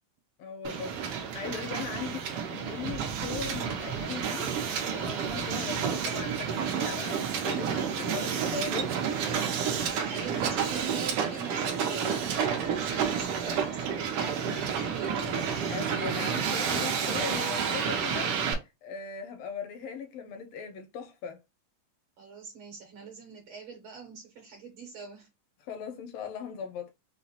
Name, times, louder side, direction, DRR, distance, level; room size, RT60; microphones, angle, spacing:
voice 1, 0.4-4.5 4.9-9.0 10.1-10.3 15.7-21.4 25.6-26.9, left 6 dB, 80° left, 1.5 m, -39 dB
Hiss, 0.6-18.5, right 7 dB, 85° right, 1.3 m, -30 dB
voice 2, 9.8-15.3 22.2-25.3, right 6 dB, 70° right, 1.6 m, -43 dB
5.5 x 2.0 x 2.8 m
omnidirectional pair, 3.5 m